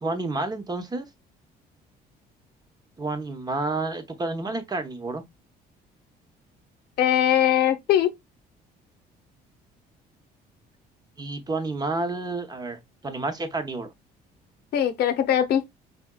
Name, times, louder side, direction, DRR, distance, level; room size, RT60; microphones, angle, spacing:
voice 1, 0.0-1.1 3.0-5.2 11.2-13.9, right 3 dB, 25° right, 0.8 m, -30 dB
voice 2, 7.0-8.1 14.7-15.7, left 10 dB, 70° left, 0.7 m, -21 dB
4.8 x 3.4 x 2.2 m
cardioid pair, 110°, 17 cm